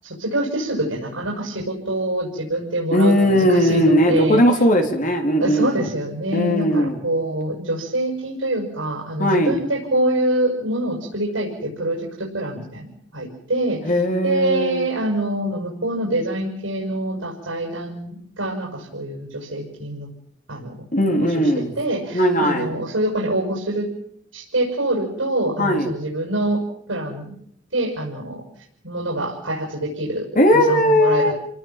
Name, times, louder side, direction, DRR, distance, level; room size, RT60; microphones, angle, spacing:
voice 1, 0.0-4.4 5.4-13.8 14.2-20.1 20.5-20.8 21.2-23.9 24.3-26.6 26.9-27.3 27.7-28.4 28.8-30.3 30.5-31.3, right 1 dB, 85° right, -1 dB, 6.8 m, -25 dB
voice 2, 2.9-5.9 6.3-7.0 9.2-9.6 13.8-14.9 20.9-21.7 22.1-22.7 25.6-25.9 30.4-31.3, equal, 45° left, 4 dB, 3.9 m, -18 dB
29.5 x 19.0 x 7.6 m, 0.71 s
head